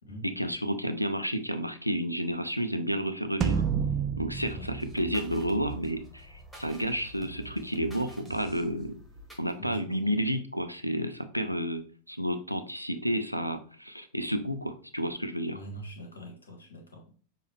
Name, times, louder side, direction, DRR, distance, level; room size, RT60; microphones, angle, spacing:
voice 1, 0.2-3.6 4.2-9.0 9.4-15.6, equal, 90° left, 10 dB, 0.4 m, -31 dB
sound 1, 3.4-5.9, right 7 dB, 30° right, 0.3 m, -30 dB
sound 2, 4.5-9.5, right 3 dB, ahead, 1.3 m, -46 dB
voice 2, 9.6-10.1 15.5-17.1, right 1 dB, 70° left, 2 dB, 1.3 m, -44 dB
6.4 x 2.2 x 3.4 m, 0.42 s
figure-of-eight pair, 90°, 0 cm